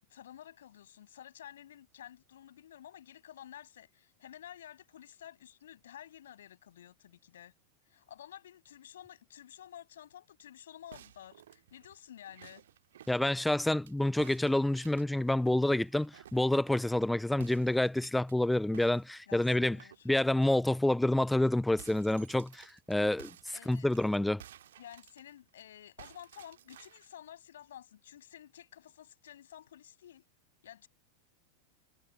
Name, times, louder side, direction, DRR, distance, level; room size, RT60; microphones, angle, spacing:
voice 1, 0.0-7.5 7.9-12.6 19.3-20.1 23.5-23.9 24.8-30.2 30.6-30.9, left 11 dB, 60° left, 7.2 m, -52 dB
sound 1, 10.9-13.9 14.2-17.0 17.4-18.3 18.7-20.5 20.9-21.1 21.3-25.6 26.0-27.2, right 11 dB, 60° right, 1.7 m, -56 dB
voice 2, 13.1-19.8 20.1-23.3 23.7-24.4, left 1 dB, 5° left, 0.3 m, -28 dB
figure-of-eight pair, 90°, 0 cm